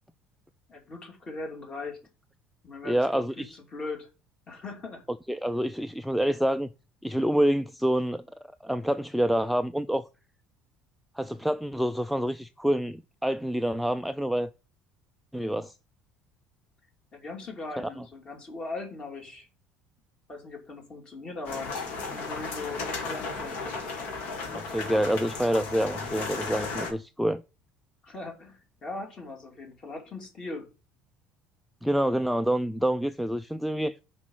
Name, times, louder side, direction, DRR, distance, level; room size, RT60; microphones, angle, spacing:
voice 1, 0.7-2.0 2.6-4.1 4.5-5.0 17.1-19.5 20.3-21.7 22.1-23.7 28.0-30.7, left 3 dB, 30° left, 2.6 m, -39 dB
voice 2, 2.8-3.6 5.3-6.7 7.0-8.2 8.6-10.0 11.2-14.5 15.3-15.7 17.8-18.0 24.5-27.4 31.8-34.0, equal, ahead, 0.3 m, -27 dB
sound 1, 21.4-26.9, left 4 dB, 65° left, 2.4 m, -35 dB
6.2 x 5.2 x 6.1 m
cardioid pair, 145°, 3 cm